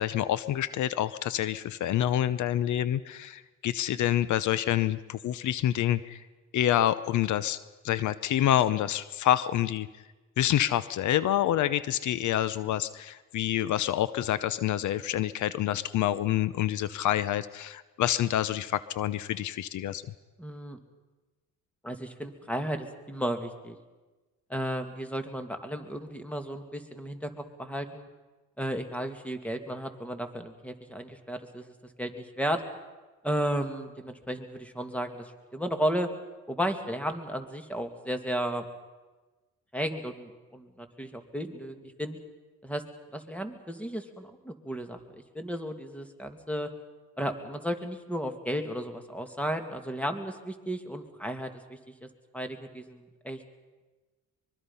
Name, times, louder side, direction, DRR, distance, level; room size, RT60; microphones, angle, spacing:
voice 1, 0.0-6.2 6.5-7.6 7.8-9.9 10.4-20.0, left 12 dB, 75° left, 16 dB, 0.8 m, -27 dB
voice 2, 20.4-20.8 21.8-23.8 24.5-28.1 28.6-32.6 33.2-36.1 36.5-38.6 39.7-42.2 42.6-42.8 43.1-46.7 47.2-52.1 52.3-53.4, equal, 5° left, 6 dB, 2.4 m, -34 dB
24.0 x 23.0 x 5.6 m, 1.2 s
cardioid pair, 90°, 30 cm